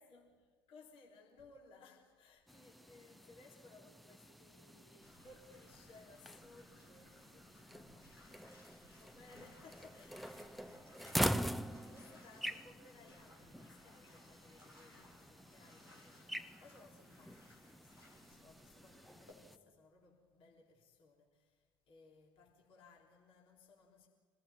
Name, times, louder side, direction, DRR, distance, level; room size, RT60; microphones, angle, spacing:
voice 1, 0.0-24.1, left 3 dB, 50° left, 3.5 m, -62 dB
sound 1, 2.5-19.6, equal, ahead, 0.8 m, -45 dB
Bathtub (filling or washing), 5.0-19.3, left 2 dB, 85° left, 3.8 m, -63 dB
26.0 x 18.5 x 9.5 m
figure-of-eight pair, 60°, 12 cm